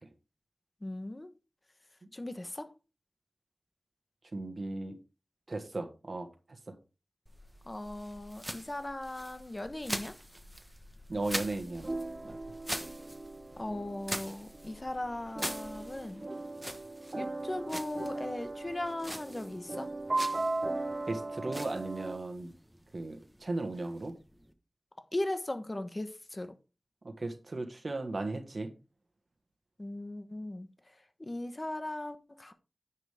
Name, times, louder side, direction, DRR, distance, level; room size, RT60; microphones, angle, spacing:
voice 1, 0.8-1.3 2.1-2.7 7.6-10.1 13.6-16.3 17.2-19.9 25.1-26.6 29.8-32.5, left 1 dB, 30° left, 1.2 m, -38 dB
voice 2, 4.3-5.0 5.5-6.3 6.7-6.8 11.1-11.9 12.2-12.4 21.1-22.5 22.9-24.1 27.0-28.7, right 2 dB, 55° right, 1.5 m, -36 dB
sound 1, 7.3-24.5, equal, 5° right, 1.1 m, -44 dB
sound 2, 11.7-22.2, right 2 dB, 35° right, 0.7 m, -38 dB
9.7 x 7.5 x 3.5 m
wide cardioid pair, 80°, 0 cm